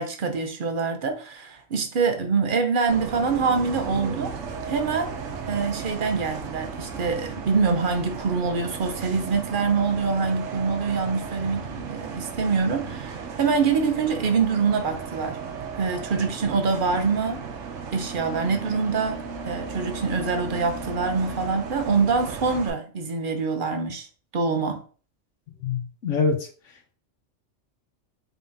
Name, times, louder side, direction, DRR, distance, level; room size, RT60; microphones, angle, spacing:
voice 1, 0.0-4.3 4.7-5.1 5.5-15.4 15.8-17.4 17.9-24.1 24.3-24.8, right 5 dB, 50° right, 0.7 m, -25 dB
Bus, 2.9-22.7, right 5 dB, 75° right, 1.0 m, -35 dB
voice 2, 25.6-26.5, left 5 dB, 80° left, 1.0 m, -24 dB
3.9 x 3.5 x 2.6 m
omnidirectional pair, 1.3 m